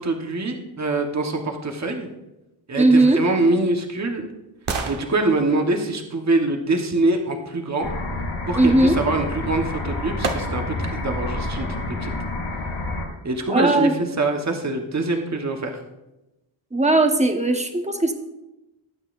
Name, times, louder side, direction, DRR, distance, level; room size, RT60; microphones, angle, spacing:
voice 1, 0.0-2.1 2.7-4.3 4.9-7.9 8.5-11.7 12.0-12.1 13.2-13.9 14.2-15.8, right 2 dB, 35° right, 3 dB, 1.2 m, -24 dB
voice 2, 2.8-3.2 8.5-9.0 13.5-13.9 16.7-18.1, right 2 dB, 15° right, 5 dB, 1.2 m, -18 dB
sound 1, 3.1-7.2 9.3-9.4 10.2-10.9 11.4-11.5, right 4 dB, 85° right, 1.4 m, -34 dB
sound 2, 7.8-13.1, left 2 dB, 75° left, 4.2 m, -28 dB
18.5 x 8.9 x 2.6 m, 0.97 s
wide cardioid pair, 95°, 47 cm